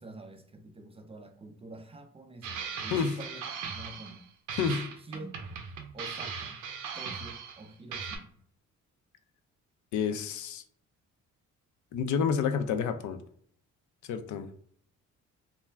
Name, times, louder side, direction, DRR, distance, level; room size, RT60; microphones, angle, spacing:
voice 1, 0.0-4.2 5.1-5.5 5.9-6.6 7.0-8.4, right 2 dB, 20° right, 0.3 m, -47 dB
sound 1, 2.4-4.2 4.5-7.7 7.9-8.2, right 6 dB, 85° right, 0.6 m, -39 dB
voice 2, 4.6-4.9 9.9-10.6 11.9-13.2 14.0-14.5, left 6 dB, 70° left, 0.5 m, -29 dB
2.3 x 2.2 x 3.2 m
cardioid pair, 90°, 30 cm